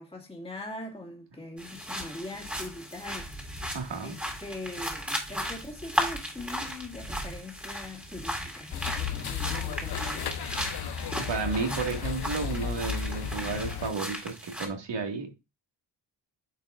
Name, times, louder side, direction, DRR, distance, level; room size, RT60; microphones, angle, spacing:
voice 1, 0.0-3.7 4.0-10.4, left 1 dB, 15° left, 2.1 m, -42 dB
sound 1, 1.6-14.7, equal, 5° right, 2.0 m, -36 dB
voice 2, 3.7-4.1 11.3-15.4, right 4 dB, 75° right, 2.0 m, -32 dB
sound 2, 8.7-13.9, left 8 dB, 60° left, 0.8 m, -34 dB
9.6 x 6.6 x 2.5 m
wide cardioid pair, 165°, 43 cm